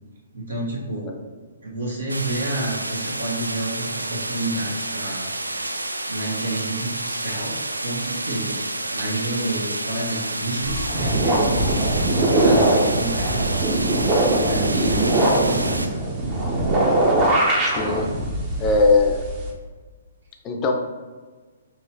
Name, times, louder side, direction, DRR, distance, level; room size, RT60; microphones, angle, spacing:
voice 1, 0.3-1.1 1.6-5.2 5.5-5.8 6.1-8.6 8.9-13.6 14.5-16.1, right 2 dB, 70° right, -4 dB, 1.0 m, -29 dB
sound 1, 2.1-15.9, right 2 dB, 85° right, 0.3 m, -29 dB
sound 2, 10.6-19.5, right 1 dB, 25° right, 0.8 m, -21 dB
voice 2, 17.6-18.1 18.6-19.2 20.4-20.7, left 3 dB, 25° left, 3 dB, 0.5 m, -20 dB
5.4 x 3.1 x 2.7 m, 1.4 s
figure-of-eight pair, 125°, 0 cm